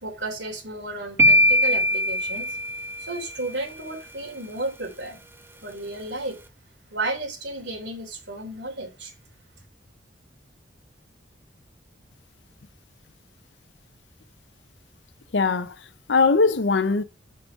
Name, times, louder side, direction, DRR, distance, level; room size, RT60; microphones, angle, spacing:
voice 1, 0.0-2.6 3.0-5.2 5.6-6.4 6.9-9.1, right 2 dB, 75° right, 3.3 m, -33 dB
sound 1, 1.2-3.3, equal, 15° right, 1.1 m, -20 dB
voice 2, 15.3-17.0, left 4 dB, 75° left, 0.7 m, -21 dB
7.0 x 6.1 x 5.3 m
head